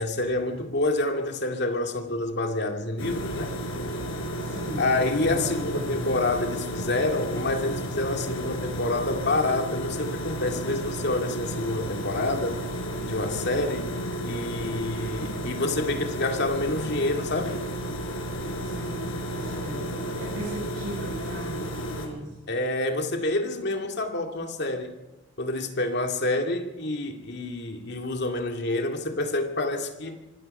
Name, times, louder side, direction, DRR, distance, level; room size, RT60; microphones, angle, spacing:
voice 1, 0.0-3.5 4.8-12.6 13.1-14.0 14.2-17.6 22.5-25.0 25.4-30.2, left 2 dB, 55° left, 4 dB, 2.3 m, -28 dB
sound 1, 3.0-22.1, right 1 dB, 90° left, 4.4 m, -32 dB
voice 2, 4.4-4.8 5.2-6.1 18.6-22.3, right 1 dB, 60° right, -5 dB, 7.4 m, -37 dB
25.5 x 18.5 x 5.5 m, 1.1 s
head